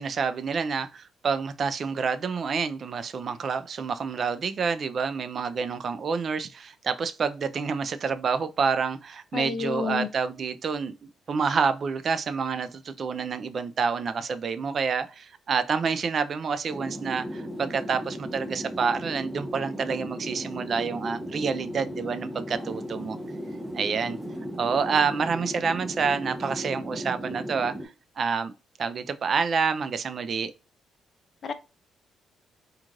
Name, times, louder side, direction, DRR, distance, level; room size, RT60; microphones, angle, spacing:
voice 1, 0.0-23.2 23.7-24.2 24.6-27.7 28.2-28.5 28.8-30.5, right 5 dB, 50° right, 0.4 m, -28 dB
voice 2, 9.3-10.1 31.4-31.5, left 5 dB, 55° left, 0.4 m, -29 dB
sound 1, 16.7-27.9, equal, 10° right, 0.7 m, -36 dB
3.1 x 2.4 x 2.4 m
cardioid pair, 90°, 0 cm